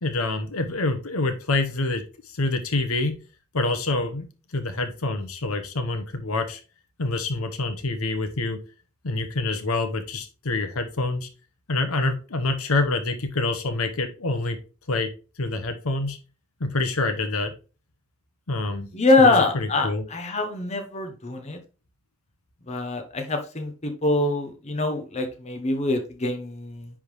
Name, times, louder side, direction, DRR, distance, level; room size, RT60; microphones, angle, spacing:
voice 1, 0.0-3.2 3.5-4.2 4.5-6.6 7.0-8.6 9.0-11.3 11.7-14.6 14.9-15.1 15.4-16.2 16.6-17.5 18.5-18.9 19.2-20.0, left 2 dB, 90° left, 7 dB, 1.0 m, -26 dB
voice 2, 18.9-21.6 22.7-26.9, left 2 dB, 30° left, 4 dB, 0.9 m, -24 dB
9.9 x 3.6 x 3.1 m, 0.34 s
head